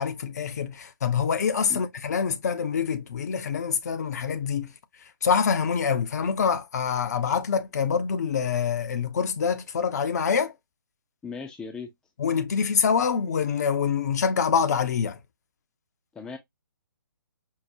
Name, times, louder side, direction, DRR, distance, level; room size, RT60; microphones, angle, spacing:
voice 1, 0.0-4.7 5.2-10.5 12.2-15.2, left 6 dB, 50° left, 0.6 m, -25 dB
voice 2, 11.2-11.9 16.1-16.4, left 5 dB, 5° left, 0.5 m, -37 dB
5.5 x 2.1 x 2.5 m
figure-of-eight pair, 140°, 11 cm